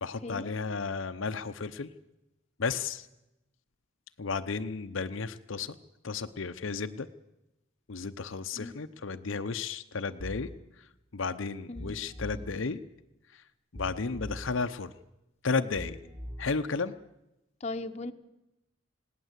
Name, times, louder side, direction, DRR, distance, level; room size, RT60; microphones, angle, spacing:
voice 1, 0.0-1.9 2.6-3.1 4.2-5.8 6.0-7.1 7.9-10.5 10.8-12.8 13.3-13.4 13.7-14.9 15.4-16.0 16.4-16.9, left 4 dB, 70° left, 9 dB, 0.7 m, -33 dB
sound 1, 10.2-10.6 11.8-12.6 13.8-14.6 15.8-16.6, equal, 25° right, 3.3 m, -41 dB
voice 2, 17.6-18.1, left 2 dB, 35° left, 8 dB, 1.0 m, -37 dB
20.5 x 17.0 x 8.1 m, 0.93 s
head